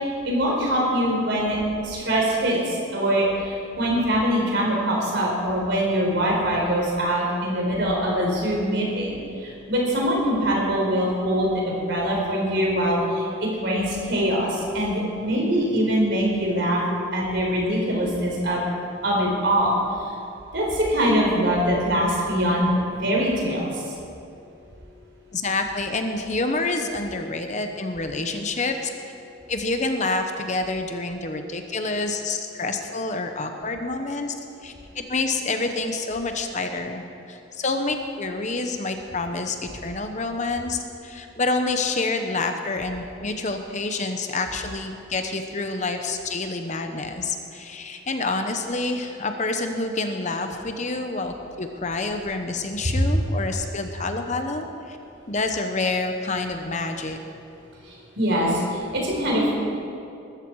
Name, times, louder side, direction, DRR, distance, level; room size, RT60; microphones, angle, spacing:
voice 1, 0.0-1.6 1.8-16.8 17.1-18.6 19.0-19.8 20.0-20.1 20.5-22.7 23.0-23.8 52.8-53.1 57.8-59.5, equal, 55° right, -2 dB, 4.4 m, -23 dB
voice 2, 25.3-28.9 29.5-34.3 34.6-55.0 55.3-57.2, left 3 dB, 35° left, 6 dB, 0.9 m, -28 dB
21.0 x 13.5 x 4.8 m, 2.6 s
head